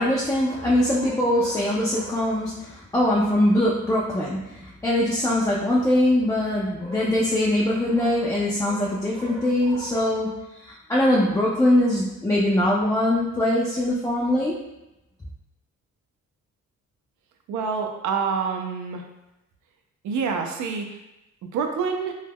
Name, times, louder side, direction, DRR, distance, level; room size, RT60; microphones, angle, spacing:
voice 1, 0.0-10.4 10.6-14.6, left 1 dB, 10° left, -6 dB, 0.4 m, -22 dB
voice 2, 17.5-19.0 20.0-20.9 21.5-22.1, right 5 dB, 75° right, 3 dB, 0.5 m, -26 dB
2.3 x 2.1 x 3.4 m, 0.93 s
cardioid pair, 90°, 30 cm